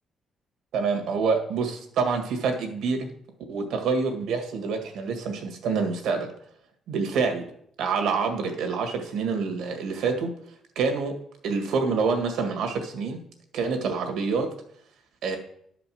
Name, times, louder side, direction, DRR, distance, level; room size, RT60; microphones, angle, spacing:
voice 1, 0.7-3.1 3.5-6.3 6.9-7.4 7.8-10.3 10.8-11.1 11.4-13.2 13.5-14.5 15.2-15.4, right 5 dB, 80° right, 5 dB, 1.8 m, -26 dB
11.0 x 5.1 x 6.2 m, 0.70 s
cardioid pair, 90°, 0 cm